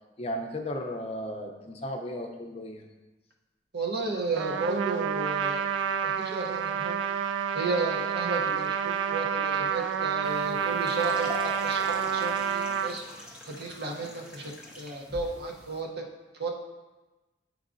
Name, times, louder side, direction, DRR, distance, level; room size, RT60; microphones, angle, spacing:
voice 1, 0.2-2.9, left 1 dB, 35° left, 2 dB, 0.6 m, -35 dB
voice 2, 3.7-5.7 6.0-7.0 7.5-11.3 11.6-16.0 16.3-16.5, right 3 dB, 60° right, 0 dB, 0.8 m, -33 dB
Trumpet, 4.3-12.9, right 8 dB, 85° right, 0.3 m, -29 dB
sound 1, 10.2-15.8, left 2 dB, 5° right, 0.6 m, -44 dB
8.1 x 4.6 x 2.5 m, 1.1 s
head